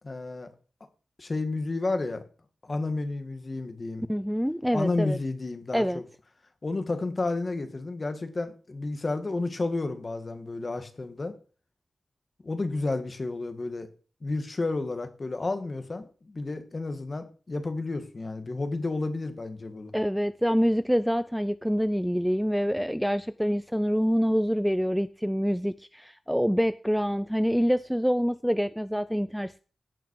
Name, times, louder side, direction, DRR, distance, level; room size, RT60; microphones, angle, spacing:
voice 1, 0.0-0.5 1.2-2.2 2.6-4.1 4.7-6.0 6.6-11.3 12.4-13.9 14.2-19.9, left 3 dB, 35° left, 1.9 m, -31 dB
voice 2, 4.1-5.2 5.7-6.0 19.9-29.6, equal, ahead, 0.4 m, -26 dB
17.0 x 5.8 x 4.8 m
wide cardioid pair, 85°, 0 cm